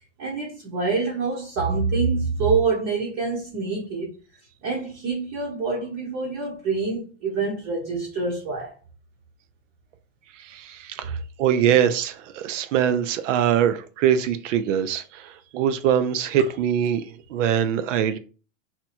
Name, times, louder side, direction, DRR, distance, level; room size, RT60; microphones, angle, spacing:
voice 1, 0.2-4.1 4.6-8.7 11.6-11.7, right 4 dB, 35° right, 1.0 m, -26 dB
voice 2, 10.4-18.2, right 9 dB, 90° right, 0.6 m, -23 dB
2.9 x 2.3 x 4.1 m
supercardioid pair, 160°, 36 cm